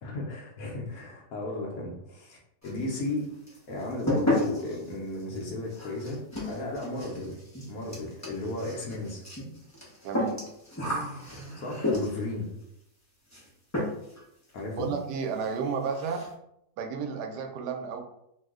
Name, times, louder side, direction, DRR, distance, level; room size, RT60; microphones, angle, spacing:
voice 1, 0.0-3.3 3.7-6.2 6.5-7.4 7.7-9.2 11.6-12.5 14.5-14.9, left 2 dB, 70° left, -2 dB, 1.0 m, -34 dB
sound 1, 2.6-3.2 3.5-12.4 13.3-13.5 13.7-14.2 14.5-14.6 15.0-15.1 15.3-15.5 15.8-16.3, left 1 dB, 25° left, 0.3 m, -32 dB
voice 2, 10.0-10.4 14.8-16.2 16.8-18.0, right 5 dB, 85° right, 4 dB, 1.2 m, -32 dB
3.0 x 2.1 x 3.5 m, 0.78 s
omnidirectional pair, 1.7 m